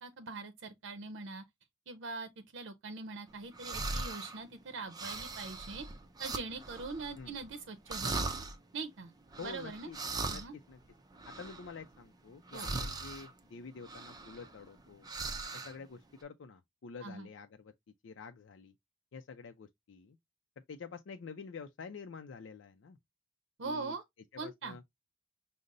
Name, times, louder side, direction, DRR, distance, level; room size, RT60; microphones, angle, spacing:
voice 1, 0.0-1.4 1.9-5.9 6.2-8.2 8.7-9.1 9.4-9.9 10.3-10.5 12.5-12.7 17.0-17.3 23.6-24.0 24.4-24.8, right 4 dB, 90° right, 0.6 m, -42 dB
sound 1, 3.5-4.4 4.9-7.5 7.9-8.6 9.3-12.0 12.5-13.3 13.8-14.8 15.0-15.8, right 3 dB, 20° right, 0.5 m, -40 dB
voice 2, 9.4-10.0 10.3-10.8 11.2-15.1 15.5-17.7 18.0-18.7 19.1-20.2 20.7-23.0 23.6-24.0 24.3-24.8, left 5 dB, 85° left, 0.4 m, -48 dB
5.3 x 2.0 x 3.7 m
head